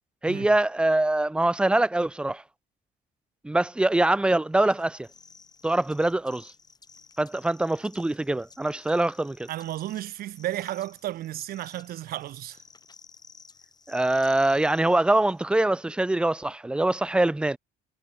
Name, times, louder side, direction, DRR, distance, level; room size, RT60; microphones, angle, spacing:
voice 1, 0.2-2.4 3.4-5.1 5.6-6.5 7.2-9.5 13.9-17.6, right 2 dB, 5° right, 0.4 m, -24 dB
sound 1, 4.7-15.6, left 4 dB, 25° left, 1.6 m, -54 dB
voice 2, 9.5-12.6, right 14 dB, 65° right, 0.8 m, -33 dB
cardioid pair, 110°, 17 cm